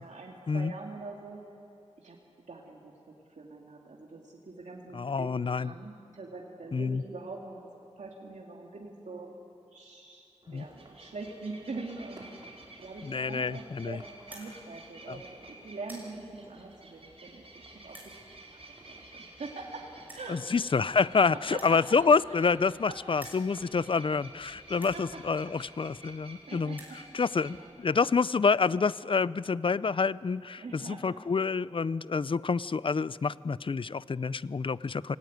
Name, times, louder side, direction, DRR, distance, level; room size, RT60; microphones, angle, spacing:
voice 1, 0.0-1.4 2.0-2.2 2.5-7.6 8.0-9.4 9.7-17.4 17.8-18.3 18.5-19.9 20.1-20.4 21.1-22.0 22.3-22.4 22.9-23.0 24.7-25.0 26.5-27.2 27.5-27.7 30.6-31.0, right 3 dB, 85° right, -1 dB, 2.3 m, -44 dB
voice 2, 4.9-5.7 6.7-7.0 10.5-10.6 13.0-14.0 15.1-15.2 20.3-26.8 27.1-35.2, left 5 dB, 45° left, 19 dB, 0.5 m, -28 dB
sound 1, 10.4-26.7, right 1 dB, 40° right, 4.1 m, -58 dB
sound 2, 10.6-27.6, right 2 dB, 55° right, 4.5 m, -53 dB
sound 3, 14.2-14.5 15.2-15.4 15.7-16.1 16.8-16.9 17.8-18.1 19.2-19.3 19.5-19.6 20.1-20.3 21.5-22.8 23.1-23.4 24.1-24.2 24.7-25.0 25.9-26.0 26.2-26.3 26.6-27.0, right 1 dB, 15° right, 6.4 m, -49 dB
26.5 x 18.0 x 9.4 m, 2.9 s
wide cardioid pair, 95°, 12 cm